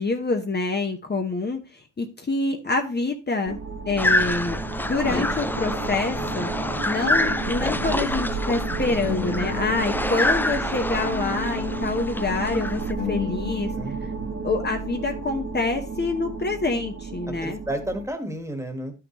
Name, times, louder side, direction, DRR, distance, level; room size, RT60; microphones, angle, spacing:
voice 1, 0.0-3.6 3.9-6.5 6.9-12.8 13.1-13.7 14.4-17.6, left 3 dB, 35° left, 4 dB, 1.1 m, -26 dB
sound 1, 3.5-18.1, right 4 dB, 60° right, 1.7 m, -32 dB
sound 2, 4.0-12.9, left 1 dB, 5° left, 0.4 m, -27 dB
sound 3, 6.0-9.9 10.1-14.0, left 9 dB, 85° left, 1.9 m, -36 dB
voice 2, 13.7-14.3 17.3-18.9, right 1 dB, 10° right, 6 dB, 1.6 m, -32 dB
12.0 x 5.8 x 3.1 m, 0.31 s
wide cardioid pair, 135°, 31 cm